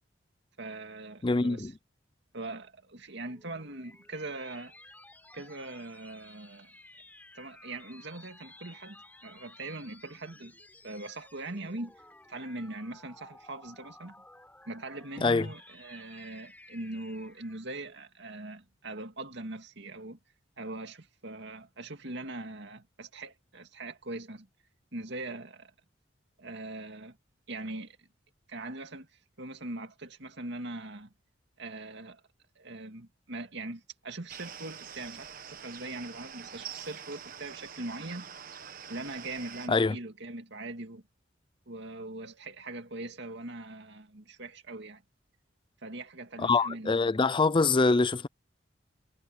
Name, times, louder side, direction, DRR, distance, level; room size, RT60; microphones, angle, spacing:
voice 1, 0.6-1.7 2.3-4.7 5.3-6.7 7.3-10.6 10.8-11.9 12.3-14.2 14.7-20.2 20.6-24.5 24.9-25.7 26.4-27.2 27.5-28.0 28.5-29.1 29.4-31.1 31.6-32.2 32.6-38.3 38.9-41.0 41.7-45.0 45.8-47.0, right 2 dB, 65° right, 2.4 m, -41 dB
voice 2, 1.2-1.7 15.2-15.5 39.7-40.0 46.4-48.3, left 3 dB, 25° left, 0.5 m, -24 dB
sound 1, 3.1-17.8, left 2 dB, 10° left, 4.1 m, -55 dB
sound 2, 34.3-39.7, right 8 dB, 50° right, 1.2 m, -45 dB
head